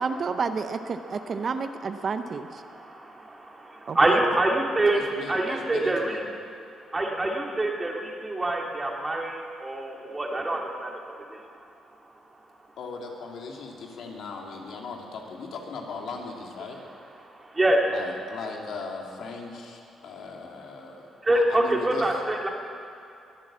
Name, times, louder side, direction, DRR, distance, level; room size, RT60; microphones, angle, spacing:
voice 1, 0.0-2.5 3.9-4.2, right 5 dB, 45° right, 9 dB, 0.7 m, -30 dB
voice 2, 1.1-6.4 6.9-11.4 17.2-17.8 21.2-22.5, right 1 dB, 20° right, 0 dB, 2.5 m, -26 dB
voice 3, 4.9-6.2 12.8-16.8 17.9-22.1, left 4 dB, 75° left, 0 dB, 2.5 m, -38 dB
22.0 x 8.6 x 7.4 m, 2.6 s
cardioid pair, 90°, 0 cm